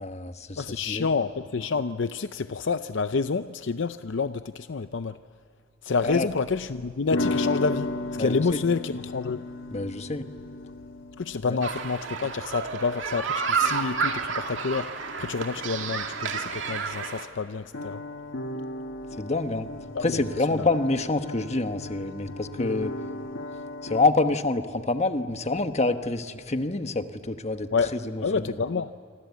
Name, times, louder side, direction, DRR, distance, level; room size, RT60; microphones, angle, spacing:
voice 1, 0.0-1.1 6.0-6.3 8.2-8.6 9.7-10.3 11.4-11.6 19.2-19.7 20.0-22.9 23.8-28.5, left 2 dB, 35° left, 8 dB, 1.2 m, -27 dB
voice 2, 0.6-5.2 5.8-9.5 11.2-18.0 19.9-20.2 20.6-20.7 27.7-28.9, left 4 dB, 70° left, 12 dB, 0.6 m, -28 dB
sound 1, 6.3-17.4 17.7-24.1, left 2 dB, 85° left, 1.2 m, -36 dB
sound 2, 11.6-17.3, right 5 dB, 75° right, 2.3 m, -30 dB
26.5 x 26.0 x 8.3 m, 2.5 s
head